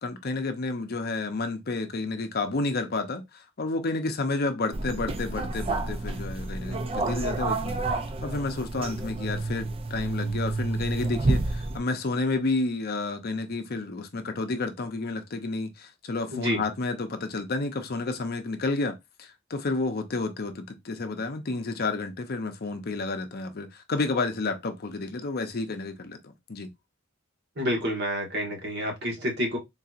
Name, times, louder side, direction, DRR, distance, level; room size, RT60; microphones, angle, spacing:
voice 1, 0.0-7.7 8.2-26.7, left 3 dB, 50° left, 0.6 m, -30 dB
sound 1, 4.7-11.8, right 2 dB, 30° right, 0.4 m, -29 dB
voice 2, 27.6-29.6, equal, 55° right, 1.3 m, -28 dB
3.9 x 2.8 x 2.4 m
head